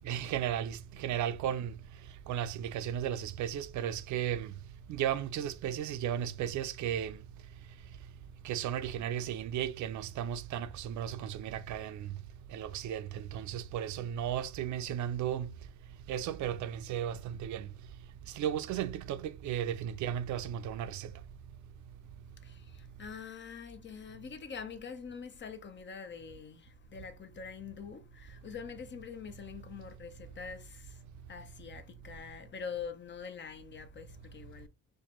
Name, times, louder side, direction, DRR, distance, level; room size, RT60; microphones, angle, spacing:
voice 1, 0.0-1.7 2.3-4.5 4.9-7.2 8.4-12.1 12.5-15.5 16.1-17.7 18.4-21.1, right 10 dB, 70° right, 0.5 m, -35 dB
voice 2, 22.4-31.0 31.3-34.7, left 6 dB, 40° left, 0.6 m, -45 dB
4.4 x 2.2 x 3.0 m
cardioid pair, 90°, 30 cm